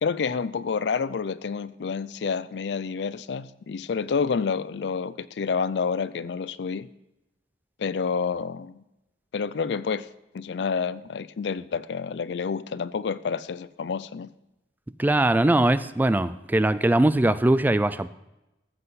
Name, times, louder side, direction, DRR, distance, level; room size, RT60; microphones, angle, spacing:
voice 1, 0.0-6.9 7.8-8.8 9.3-10.1 10.3-14.3, left 5 dB, 70° left, 0.4 m, -29 dB
voice 2, 15.0-18.1, right 1 dB, 10° right, 0.3 m, -21 dB
14.5 x 7.8 x 4.0 m
head